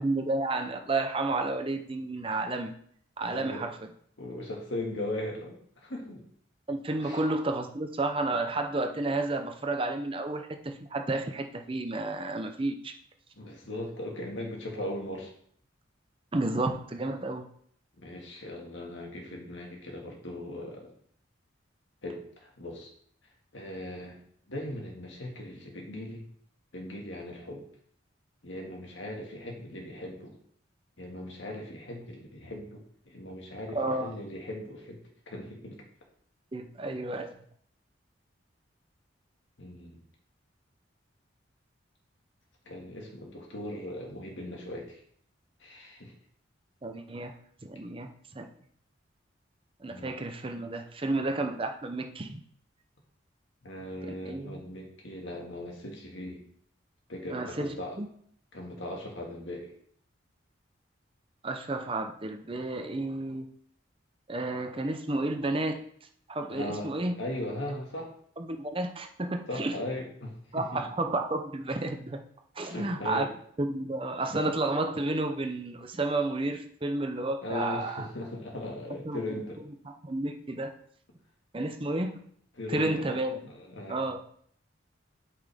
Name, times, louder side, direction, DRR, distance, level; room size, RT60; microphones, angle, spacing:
voice 1, 0.0-2.7 3.2-3.8 6.7-12.9 16.3-17.5 33.7-34.1 36.5-37.3 46.8-47.3 47.6-48.5 49.8-52.4 54.2-54.6 57.3-58.1 61.4-63.5 64.3-65.8 66.3-67.1 68.4-69.8 70.5-72.2 72.6-73.3 73.6-78.1 79.0-79.2 79.8-80.7 81.5-82.2 82.7-83.4 83.9-84.2, right 2 dB, 25° right, 5 dB, 0.6 m, -31 dB
voice 2, 3.2-3.7 4.2-6.2 7.0-7.2 13.4-15.3 18.0-20.9 22.0-22.9 23.5-24.2 24.5-26.2 26.7-27.6 28.4-30.3 31.0-35.8 39.6-40.0 42.7-44.9 45.6-46.1 49.8-50.1 53.6-56.4 57.1-58.0 58.5-59.7 66.5-66.9 67.2-68.1 69.5-70.8 72.6-73.3 77.4-79.6 82.6-83.2 83.6-84.0, left 1 dB, 75° left, 0 dB, 2.0 m, -38 dB
8.4 x 5.8 x 3.6 m, 0.62 s
head